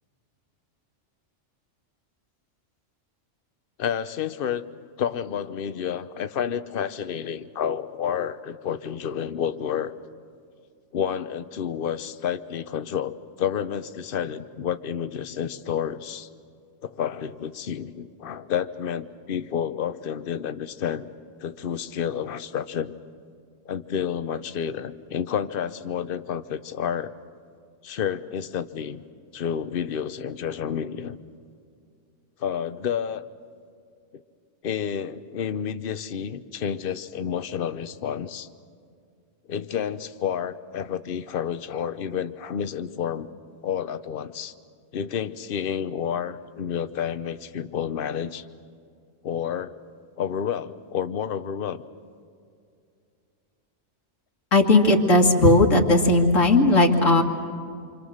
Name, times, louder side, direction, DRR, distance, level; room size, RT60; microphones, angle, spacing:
voice 1, 3.8-4.7 5.0-9.9 10.9-16.3 16.8-21.1 21.4-22.9 23.7-27.1 27.8-29.0 29.3-31.2 32.4-33.2 34.6-38.5 39.5-43.3 43.6-44.5 44.9-48.4 49.2-49.8 50.2-51.8, left 8 dB, 50° left, 12 dB, 0.9 m, -30 dB
voice 2, 54.5-57.2, left 2 dB, 85° left, 2 dB, 2.3 m, -17 dB
27.5 x 25.5 x 6.4 m, 2.4 s
omnidirectional pair, 1.3 m